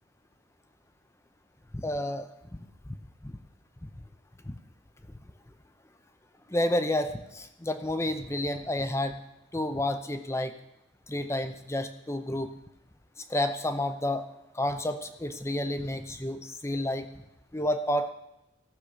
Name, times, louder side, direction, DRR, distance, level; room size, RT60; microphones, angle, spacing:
voice 1, 1.7-2.2 2.5-2.7 3.2-3.3 3.8-3.9 4.5-4.6 6.5-9.2 9.5-10.5 11.1-12.5 13.3-14.2 14.5-17.1 17.5-18.1, left 1 dB, 15° left, 9 dB, 0.6 m, -30 dB
15.0 x 6.6 x 5.0 m, 0.88 s
head